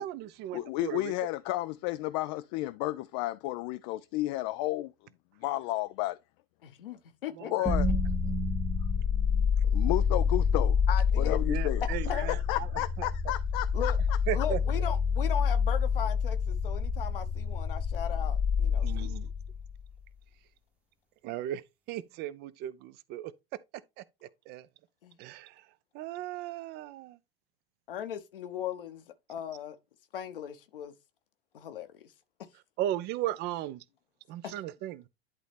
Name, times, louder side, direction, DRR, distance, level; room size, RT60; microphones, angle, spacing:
voice 1, 0.0-1.2 7.4-7.8 11.5-13.3 14.3-14.6 18.8-19.3 21.2-21.6 21.9-23.3 24.0-24.7 25.2-25.7 25.9-27.2 32.8-33.8 34.3-35.1, right 13 dB, 35° right, 0.6 m, -37 dB
voice 2, 0.5-4.9 5.4-6.1 7.5-7.9 9.7-10.8 11.2-11.8 12.5-14.2, left 18 dB, 35° left, 0.4 m, -32 dB
voice 3, 6.8-7.7 10.9-11.4 12.1-12.3 13.7-14.0 14.3-19.2 25.0-25.2 27.9-29.7 30.1-30.9 31.5-32.1 34.4-34.5, left 9 dB, 65° left, 1.1 m, -38 dB
sound 1, 7.6-19.8, left 6 dB, 5° right, 1.0 m, -28 dB
11.0 x 4.0 x 3.4 m
figure-of-eight pair, 85°, 30 cm